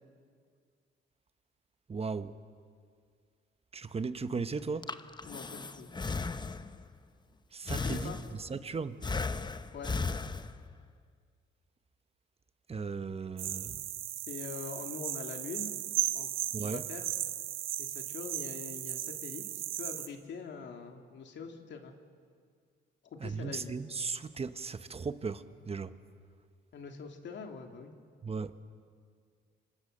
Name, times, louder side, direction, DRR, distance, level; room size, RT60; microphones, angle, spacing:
voice 1, 1.9-2.4 3.7-4.9 7.5-9.0 12.7-13.8 16.5-16.8 23.2-26.0 28.2-28.5, right 5 dB, 30° right, 1.1 m, -37 dB
Breathing, 4.6-6.9 7.7-8.6 9.0-10.8, left 4 dB, 20° left, 0.9 m, -36 dB
voice 2, 5.2-5.9 7.7-8.2 9.7-9.9 14.3-15.7 16.1-16.3 16.6-17.1 17.8-21.9 23.0-23.7 26.7-27.9, left 5 dB, 65° left, 2.7 m, -43 dB
sound 1, 13.4-20.1, right 12 dB, 85° right, 1.2 m, -36 dB
27.0 x 25.5 x 6.7 m
cardioid pair, 90°, 20 cm